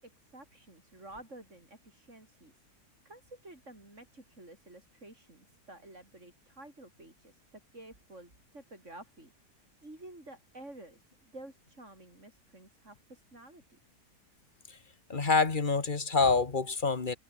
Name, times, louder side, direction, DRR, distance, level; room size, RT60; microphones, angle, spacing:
voice 1, 0.0-2.5 3.1-9.3 9.8-13.8, right 1 dB, 45° right, 7.2 m, -51 dB
voice 2, 15.1-17.2, left 4 dB, 30° left, 1.8 m, -27 dB
omnidirectional pair, 1.7 m